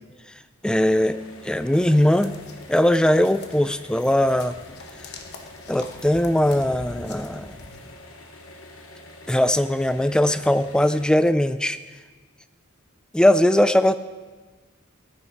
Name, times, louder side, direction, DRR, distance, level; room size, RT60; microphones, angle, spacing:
voice 1, 0.6-2.3 2.7-4.6 5.7-7.6 9.3-11.8 13.1-14.0, left 1 dB, 5° left, 12 dB, 0.3 m, -20 dB
sound 1, 0.7-11.1, left 2 dB, 70° left, 1.3 m, -46 dB
sound 2, 1.7-7.9, left 3 dB, 55° left, 1.1 m, -44 dB
14.5 x 10.0 x 4.2 m, 1.3 s
head